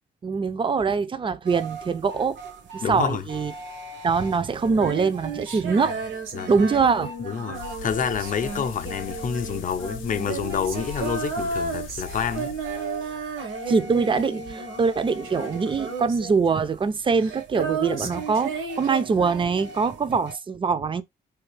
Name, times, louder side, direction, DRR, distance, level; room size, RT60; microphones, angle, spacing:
voice 1, 0.2-2.4 2.7-3.5 4.0-6.0 6.5-7.1 13.7-21.0, right 5 dB, 25° right, 0.5 m, -23 dB
sound 1, 1.4-20.4, right 2 dB, 65° right, 0.9 m, -42 dB
voice 2, 2.8-3.3 6.3-6.5 7.2-12.6 18.0-18.2, left 7 dB, 40° left, 0.6 m, -28 dB
Female singing, 4.6-15.0 15.2-19.7, right 4 dB, 80° right, 1.3 m, -33 dB
sound 2, 7.5-13.5, left 7 dB, 85° left, 0.6 m, -40 dB
3.4 x 2.3 x 3.2 m
cardioid pair, 90°, 20 cm